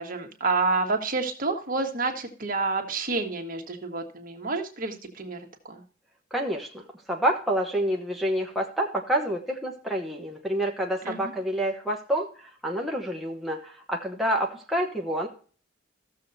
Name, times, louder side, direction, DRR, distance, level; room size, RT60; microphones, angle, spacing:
voice 1, 0.0-5.4 5.7-5.8 11.0-11.3, right 3 dB, 45° right, 3 dB, 1.5 m, -29 dB
voice 2, 6.3-15.3, right 1 dB, ahead, -1 dB, 1.0 m, -28 dB
15.0 x 6.8 x 2.7 m, 0.41 s
head